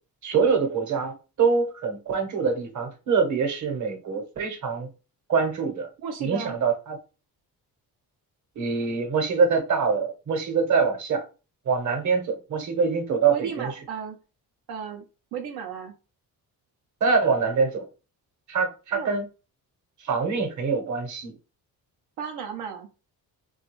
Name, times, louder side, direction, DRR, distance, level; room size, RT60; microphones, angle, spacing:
voice 1, 0.2-4.9 5.3-5.9 6.2-7.0 8.6-11.2 11.7-13.7 17.0-17.8 18.5-19.3 20.0-21.3, right 5 dB, 50° right, 0.9 m, -24 dB
voice 2, 6.0-6.6 13.3-14.2 14.7-15.0 15.3-15.9 18.9-19.2 22.2-22.9, right 7 dB, 85° right, 0.6 m, -34 dB
3.1 x 2.3 x 3.0 m
cardioid pair, 120°, 37 cm